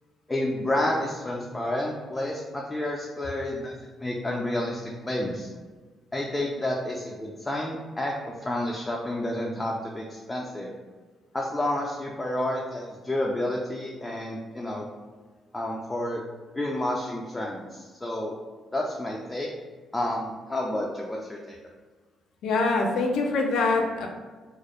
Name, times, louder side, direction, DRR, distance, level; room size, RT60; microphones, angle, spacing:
voice 1, 0.3-5.5 6.1-10.7 11.3-14.9 15.5-16.2 16.5-18.4 18.7-19.5 19.9-21.6, left 1 dB, 15° left, -2 dB, 0.3 m, -30 dB
voice 2, 22.4-24.1, left 3 dB, 80° left, 1 dB, 0.4 m, -24 dB
2.3 x 2.0 x 2.9 m, 1.4 s
cardioid pair, 90°, 0 cm